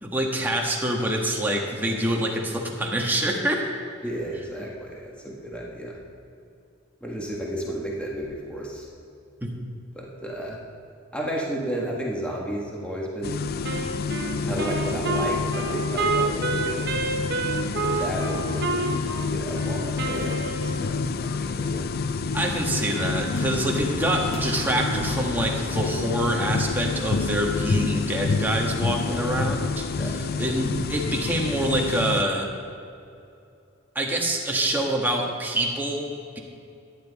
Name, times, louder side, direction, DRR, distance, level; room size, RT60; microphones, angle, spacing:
voice 1, 0.0-3.7 9.4-9.5 14.5-14.6 22.3-32.5 33.9-36.4, right 1 dB, 10° right, -1 dB, 1.4 m, -26 dB
voice 2, 4.0-5.9 7.0-8.9 9.9-10.6 11.1-13.4 14.5-17.0 17.8-21.9 29.0-29.3 30.0-30.4, right 1 dB, 5° left, -3 dB, 1.6 m, -33 dB
sound 1, 13.2-32.2, left 4 dB, 50° left, 0.4 m, -28 dB
Wind instrument woodwind instrument, 13.6-21.1, right 3 dB, 55° right, 1.0 m, -29 dB
sound 2, 23.3-24.6 25.0-25.3 26.0-26.1 26.6-27.4, left 1 dB, 65° left, 1.4 m, -42 dB
14.0 x 10.5 x 4.2 m, 2.6 s
head